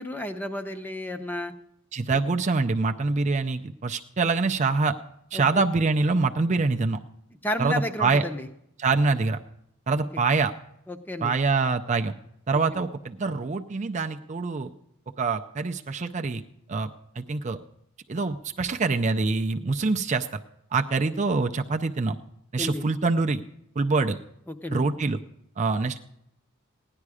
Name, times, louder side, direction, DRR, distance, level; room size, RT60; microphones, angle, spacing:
voice 1, 0.0-1.5 2.1-2.2 5.3-5.6 7.4-8.5 10.1-10.2 10.9-11.3 22.6-22.8 24.5-24.9, left 1 dB, 10° left, 5 dB, 0.7 m, -32 dB
voice 2, 1.9-5.0 5.3-7.0 7.6-8.3 8.8-9.4 9.9-10.5 11.2-12.1 12.5-14.7 15.2-16.4 16.7-16.9 17.2-17.6 18.1-20.3 20.7-22.2 22.5-23.4 23.8-24.2 24.7-25.2 25.6-26.0, right 3 dB, 30° right, 6 dB, 0.4 m, -25 dB
16.5 x 11.0 x 4.9 m, 0.77 s
head